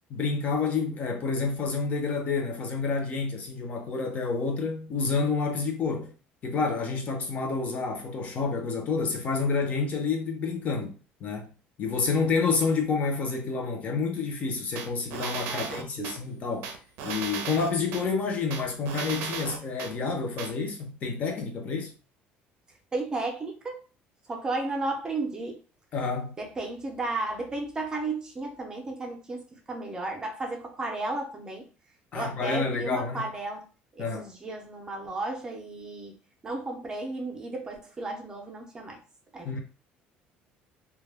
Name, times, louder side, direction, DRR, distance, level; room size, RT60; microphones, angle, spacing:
voice 1, 0.1-6.1 6.4-11.5 11.8-16.7 17.0-21.9 25.9-26.4 32.1-33.2 34.0-34.3 39.4-39.6, left 4 dB, 40° left, 0.6 m, -29 dB
sound 1, 14.8-16.2 16.6-18.0 18.5-19.9 20.4-20.5, right 6 dB, 80° right, 0.5 m, -35 dB
voice 2, 15.5-16.1 22.9-23.8 24.3-25.6 26.4-29.4 29.7-31.6 32.1-33.6 34.0-36.2 36.4-39.0 39.3-39.5, right 2 dB, 20° right, 0.5 m, -34 dB
2.2 x 2.1 x 3.3 m
cardioid pair, 155°, 4 cm